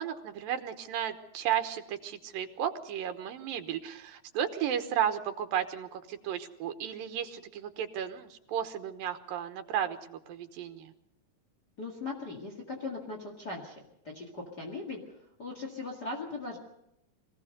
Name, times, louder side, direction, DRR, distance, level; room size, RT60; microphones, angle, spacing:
voice 1, 0.0-10.9, right 9 dB, 85° right, 8 dB, 2.9 m, -34 dB
voice 2, 11.8-15.0 15.4-16.6, left 3 dB, 35° left, 1 dB, 2.2 m, -39 dB
23.5 x 16.5 x 6.7 m, 0.80 s
omnidirectional pair, 3.9 m